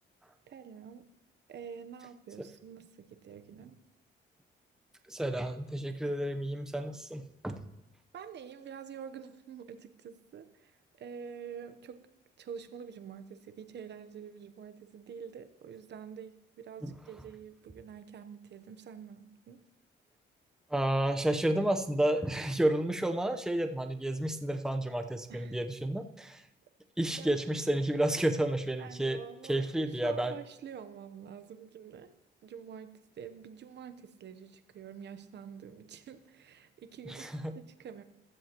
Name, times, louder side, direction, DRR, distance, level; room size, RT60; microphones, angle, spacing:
voice 1, 0.5-1.1 1.5-3.8 8.1-12.0 12.4-19.6 25.3-25.6 27.1-27.4 28.8-32.1 32.4-37.3 37.5-38.0, right 7 dB, 60° right, 10 dB, 0.9 m, -47 dB
voice 2, 5.1-7.6 16.8-16.9 20.7-26.4 27.0-29.2 29.5-30.3 37.1-37.6, right 1 dB, 5° right, 6 dB, 0.8 m, -31 dB
15.0 x 13.5 x 3.0 m, 0.91 s
cardioid pair, 90°, 20 cm